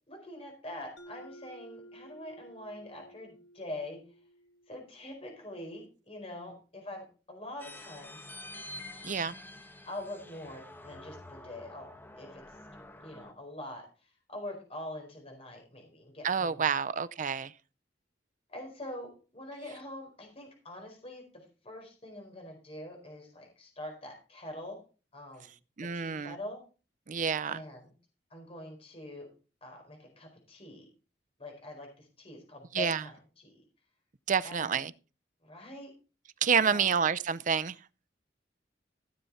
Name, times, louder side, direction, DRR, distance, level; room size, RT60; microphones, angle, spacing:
voice 1, 0.1-4.0 4.7-8.2 9.9-11.9 12.1-12.4 13.0-13.9 14.3-16.6 18.5-24.8 25.1-25.5 25.8-26.6 27.5-27.8 28.3-29.3 29.6-30.9 31.4-33.6 34.4-34.8 35.4-35.9 36.5-36.9, left 1 dB, 35° left, 4.5 m, -44 dB
Mallet percussion, 1.0-5.5, right 1 dB, 90° left, 2.1 m, -54 dB
sound 1, 7.6-13.3, left 2 dB, 10° left, 1.2 m, -47 dB
voice 2, 9.0-9.3 16.2-17.5 25.8-26.4 27.1-27.6 32.7-33.0 34.3-34.9 36.4-37.8, right 6 dB, 45° right, 0.6 m, -28 dB
15.5 x 7.1 x 4.1 m
head